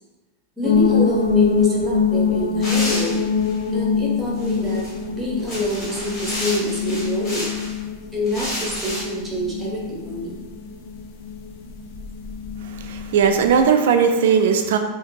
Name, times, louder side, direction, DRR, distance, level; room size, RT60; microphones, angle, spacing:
sound 1, 0.6-13.7, left 5 dB, 60° left, 0.4 m, -24 dB
voice 1, 0.6-3.2 3.7-7.5 8.1-10.4, left 1 dB, 10° right, -4 dB, 0.7 m, -26 dB
sound 2, 2.6-3.6 4.3-4.9 5.4-7.7 8.2-9.0, left 1 dB, 30° left, 1.3 m, -30 dB
voice 2, 12.7-14.8, right 6 dB, 75° right, 6 dB, 0.3 m, -18 dB
2.8 x 2.5 x 2.5 m, 1.2 s
supercardioid pair, 150°, 0 cm